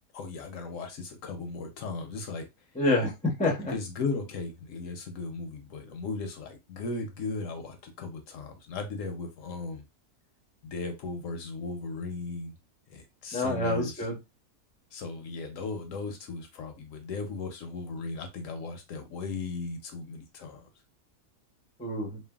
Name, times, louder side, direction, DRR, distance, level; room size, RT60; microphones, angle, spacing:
voice 1, 0.1-2.5 3.7-9.8 10.6-12.5 12.9-14.0 14.9-20.6, left 3 dB, 70° left, 0.9 m, -36 dB
voice 2, 2.7-3.7 13.3-14.2 21.8-22.2, left 1 dB, 10° left, 0.3 m, -27 dB
3.2 x 2.1 x 2.2 m
omnidirectional pair, 1.5 m